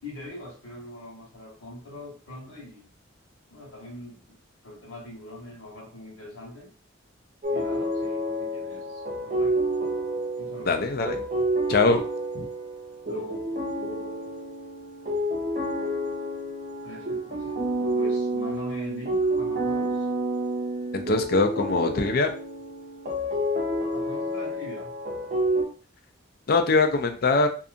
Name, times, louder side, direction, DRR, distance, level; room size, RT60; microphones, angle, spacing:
voice 1, 0.0-2.9 3.5-4.4 4.6-6.7 7.5-9.7 10.4-10.8 13.1-13.4 16.8-17.6 17.9-20.1 23.9-24.9, left 1 dB, 75° left, -2 dB, 1.1 m, -42 dB
sound 1, 7.4-25.6, right 1 dB, 40° right, 0.6 m, -29 dB
voice 2, 10.6-11.2 11.7-12.0 12.3-12.5 20.9-22.3 26.5-27.5, left 3 dB, 50° left, 7 dB, 0.4 m, -22 dB
2.7 x 2.4 x 2.5 m, 0.38 s
head